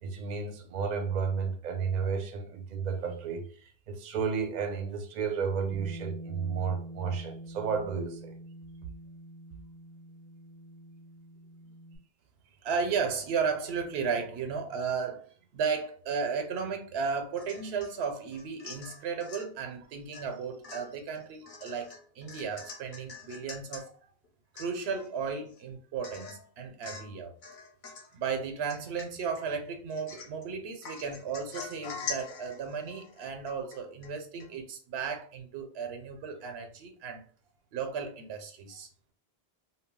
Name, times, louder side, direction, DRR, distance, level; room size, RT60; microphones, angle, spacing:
voice 1, 0.0-3.4 3.9-8.4, right 6 dB, 55° right, 0.5 m, -32 dB
Bass guitar, 5.7-12.0, right 1 dB, 15° left, 0.5 m, -46 dB
voice 2, 12.6-15.2 15.5-23.9 24.6-27.3 28.1-37.2 37.7-38.9, right 5 dB, 90° right, 0.9 m, -34 dB
Domestic sounds home sounds / Chink clink / Drip, 17.4-17.9 18.3-19.5 20.1-20.3 20.6-23.8 24.2-24.3 24.5-25.1 25.5-25.6 26.0-26.4 26.8-27.2 27.4-28.1 28.7-29.4 29.9-30.4 30.8-34.1 34.4-34.5, left 5 dB, 55° left, 0.6 m, -44 dB
2.2 x 2.0 x 3.5 m
omnidirectional pair, 1.1 m